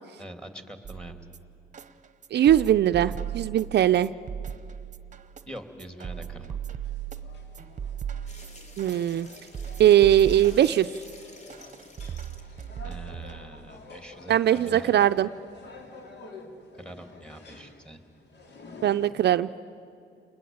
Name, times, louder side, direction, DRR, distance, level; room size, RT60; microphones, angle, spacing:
voice 1, 0.2-1.1 5.5-6.6 12.8-14.9 16.8-18.0, equal, 5° left, 7 dB, 2.9 m, -43 dB
sound 1, 0.8-13.8, right 8 dB, 40° right, 1.0 m, -38 dB
voice 2, 2.3-4.1 8.8-9.3 9.8-10.9 14.3-15.3 18.8-19.5, right 11 dB, 60° right, 10 dB, 0.6 m, -20 dB
sound 2, 6.8-19.1, left 3 dB, 60° left, 3.4 m, -49 dB
sound 3, 8.3-12.8 13.2-13.3 14.4-14.5 14.7-14.8, left 2 dB, 35° left, 3.4 m, -51 dB
29.5 x 20.5 x 8.8 m, 2.8 s
cardioid pair, 90°, 20 cm